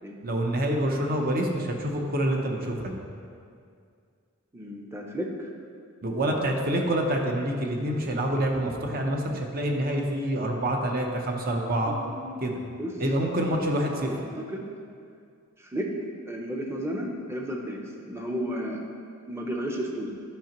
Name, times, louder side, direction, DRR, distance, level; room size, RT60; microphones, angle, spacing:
voice 1, 0.2-3.0 6.0-11.9 12.4-12.6 13.0-14.1, right 1 dB, 45° right, 1 dB, 0.8 m, -27 dB
voice 2, 4.5-5.5 11.9-12.9 13.6-13.7 14.0-14.6 15.7-15.9 16.3-18.8 19.3-20.2, equal, 10° right, 1 dB, 0.7 m, -33 dB
10.0 x 5.8 x 3.0 m, 2.3 s
head